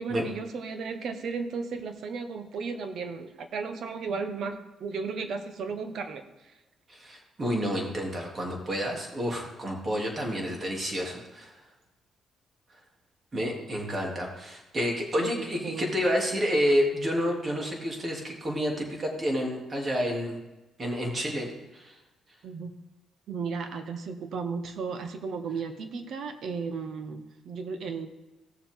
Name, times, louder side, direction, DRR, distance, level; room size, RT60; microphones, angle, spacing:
voice 1, 0.0-6.5 15.2-15.9 22.4-22.8 23.3-28.1, right 5 dB, 65° right, 8 dB, 1.2 m, -35 dB
voice 2, 6.9-11.5 13.3-20.4 20.8-21.9, equal, 35° right, 0 dB, 3.1 m, -29 dB
17.0 x 7.1 x 3.8 m, 1.0 s
cardioid pair, 90°, 0 cm